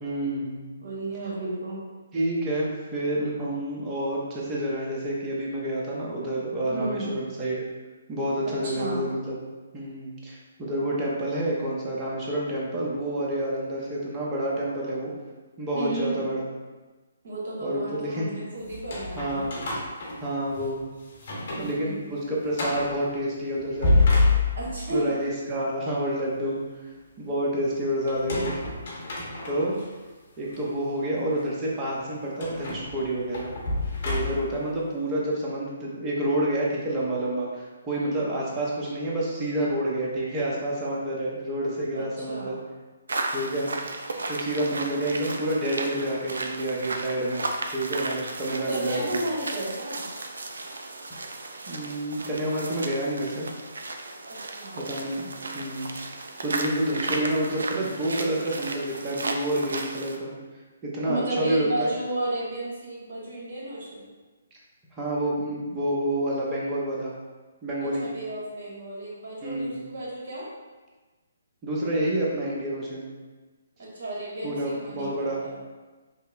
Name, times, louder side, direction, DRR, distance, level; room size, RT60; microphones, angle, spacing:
voice 1, 0.0-0.6 2.1-7.6 8.1-9.4 9.7-15.1 15.6-16.4 17.6-18.3 19.2-19.5 20.2-20.9 21.6-24.1 24.9-26.6 27.2-28.6 29.4-29.8 30.4-33.5 34.0-42.6 43.3-43.9 44.3-47.4 47.7-49.2 51.7-53.5 54.7-55.3 55.5-55.9 56.4-60.3 60.8-61.9 65.0-67.1 67.6-68.1 69.4-69.9 71.6-73.1 74.4-75.4, right 1 dB, 20° right, -5 dB, 0.8 m, -28 dB
voice 2, 0.8-1.9 6.7-7.2 8.4-9.0 15.7-16.3 17.2-19.5 21.5-22.1 24.6-25.2 38.0-38.2 41.9-42.6 48.5-50.1 54.3-54.8 61.0-64.1 67.8-70.5 73.8-75.6, right 1 dB, 50° right, -5 dB, 1.4 m, -33 dB
sound 1, 18.7-20.7 21.1-21.7 22.0-22.1 22.5-22.9 23.6-24.9 28.1-29.8 30.5-30.6 32.4-34.6, left 3 dB, 55° left, 1.0 m, -27 dB
sound 2, 43.1-60.2, right 2 dB, 70° right, 0.4 m, -34 dB
5.4 x 2.1 x 2.5 m, 1.3 s
figure-of-eight pair, 135°, 0 cm